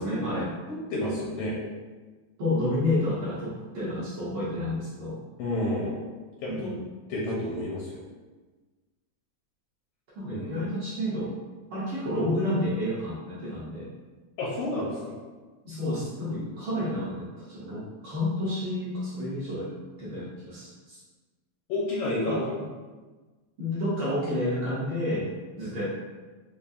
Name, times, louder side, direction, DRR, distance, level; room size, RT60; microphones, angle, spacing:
voice 1, 0.0-0.5 2.4-5.2 6.5-6.8 10.1-11.3 11.7-13.9 15.6-19.7 20.0-21.0 22.3-22.4 23.6-25.3 25.6-25.8, left 1 dB, 70° right, -9 dB, 1.3 m, -30 dB
voice 2, 0.7-1.6 5.4-6.0 6.4-6.7 7.1-8.0 10.3-10.6 14.4-15.2 21.7-22.5, left 1 dB, 80° left, -5 dB, 1.3 m, -30 dB
5.2 x 2.4 x 2.5 m, 1.3 s
omnidirectional pair, 3.4 m